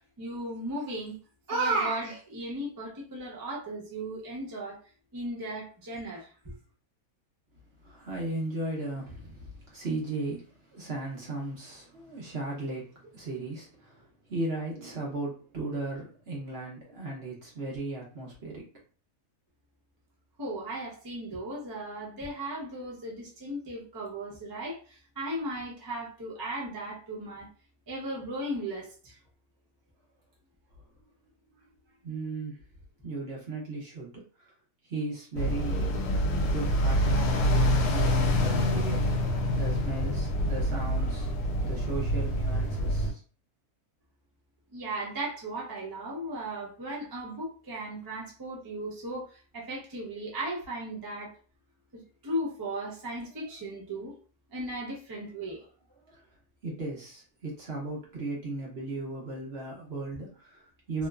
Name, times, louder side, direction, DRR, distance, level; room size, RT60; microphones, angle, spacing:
voice 1, 0.2-1.2 1.5-4.8 5.1-6.5 20.4-27.5 27.9-29.2 44.7-51.3 51.9-54.1 54.5-55.6, right 1 dB, 30° right, -4 dB, 0.4 m, -36 dB
voice 2, 7.8-18.7 32.0-32.6 33.0-34.5 34.8-36.0 36.5-39.1 39.5-41.4 41.6-43.2 56.1-56.2 56.6-61.1, right 2 dB, 50° right, -3 dB, 0.8 m, -36 dB
sound 1, 35.4-43.1, equal, 85° left, 1.2 m, -26 dB
2.9 x 2.0 x 2.3 m, 0.38 s
omnidirectional pair, 1.6 m